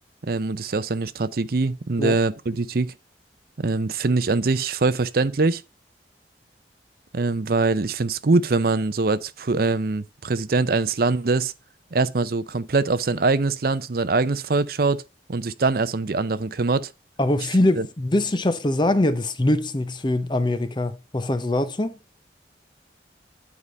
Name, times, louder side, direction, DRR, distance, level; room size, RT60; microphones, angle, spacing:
voice 1, 0.2-2.9 3.6-5.6 7.1-11.5 11.9-15.0 15.3-16.9 17.8-17.9, right 3 dB, 55° right, 0.6 m, -23 dB
voice 2, 17.2-22.0, left 1 dB, 25° left, 0.6 m, -23 dB
9.8 x 4.9 x 5.3 m
head